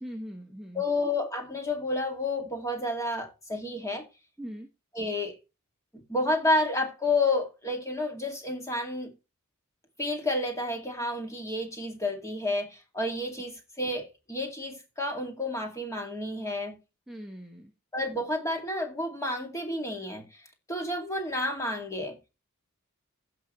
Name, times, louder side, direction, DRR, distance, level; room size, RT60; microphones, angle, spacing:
voice 1, 0.0-0.8 4.4-4.7 17.1-17.7, equal, ahead, 1.1 m, -40 dB
voice 2, 0.7-4.0 4.9-5.4 6.1-9.1 10.0-16.8 17.9-20.4 20.7-22.2, left 2 dB, 15° left, 2.3 m, -30 dB
16.0 x 6.0 x 3.1 m
head